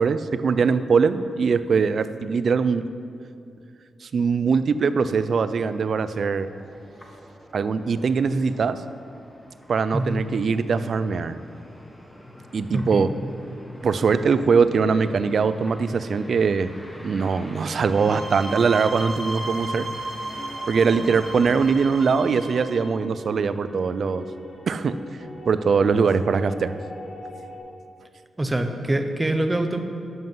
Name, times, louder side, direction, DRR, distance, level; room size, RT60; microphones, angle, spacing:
voice 1, 0.0-2.9 4.0-6.5 7.5-8.8 9.7-11.4 12.5-13.1 13.8-16.7 17.0-19.9 20.7-24.3 24.7-25.0 25.5-26.8, right 5 dB, 60° right, 13 dB, 0.4 m, -22 dB
sound 1, 4.9-22.0, left 1 dB, 10° left, 1.4 m, -45 dB
voice 2, 12.7-13.1 28.4-29.8, right 1 dB, 15° right, 6 dB, 0.9 m, -25 dB
sound 2, 17.9-22.8, right 2 dB, 45° right, 2.7 m, -34 dB
sound 3, 20.3-27.6, left 1 dB, 80° left, 2.6 m, -41 dB
11.5 x 7.6 x 5.6 m, 2.5 s
cardioid pair, 105°, 0 cm